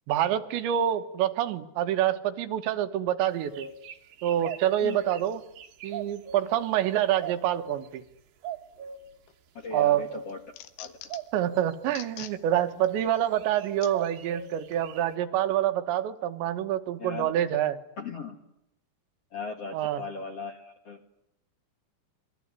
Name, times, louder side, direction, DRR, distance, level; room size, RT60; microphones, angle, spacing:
voice 1, 0.1-3.7 4.2-5.4 5.8-8.0 9.7-10.0 11.3-17.8 19.7-20.0, right 11 dB, 80° right, 9 dB, 3.5 m, -27 dB
sound 1, 3.3-6.5 7.2-7.9 8.4-9.0 9.7-10.3 11.1-11.7 12.5-13.1 13.3-15.1, right 8 dB, 60° right, 2.8 m, -39 dB
sound 2, 9.3-9.7 10.1-11.4 11.9-12.4 12.8-12.9 13.8-13.9 14.7-14.8, left 13 dB, 75° left, 3.5 m, -44 dB
voice 2, 9.5-10.4 10.8-10.9 17.0-17.3 18.0-18.4 19.3-21.0, left 4 dB, 50° left, 5 dB, 2.0 m, -38 dB
26.5 x 21.5 x 9.8 m, 0.79 s
omnidirectional pair, 5.2 m